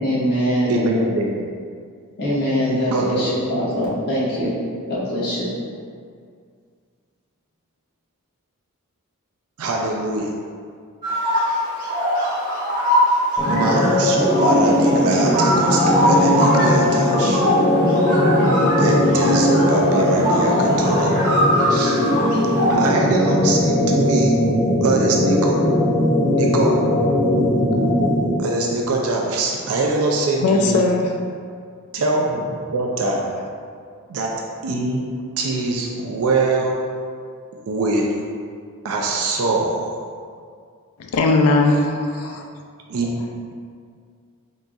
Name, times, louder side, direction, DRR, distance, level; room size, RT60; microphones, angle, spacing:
voice 1, 0.0-0.9 2.2-4.5 4.9-5.5, equal, 45° left, -9 dB, 1.2 m, -22 dB
voice 2, 0.6-1.5 2.9-3.2 9.6-10.3 13.5-17.4 18.8-21.1 21.7-22.0 22.7-24.4 24.8-25.6 26.3-26.8 28.4-30.8 31.9-33.2 34.1-35.1 35.4-36.8 37.7-38.1 38.8-40.0 42.9-43.2, right 2 dB, 70° right, 0 dB, 0.4 m, -23 dB
sound 1, 11.0-22.7, equal, 40° right, 1.0 m, -22 dB
sound 2, 13.4-28.5, left 1 dB, 10° left, 0.4 m, -19 dB
voice 3, 30.4-31.1 41.0-42.5, left 2 dB, 75° left, 3 dB, 0.4 m, -18 dB
3.9 x 3.8 x 2.3 m, 2.2 s
head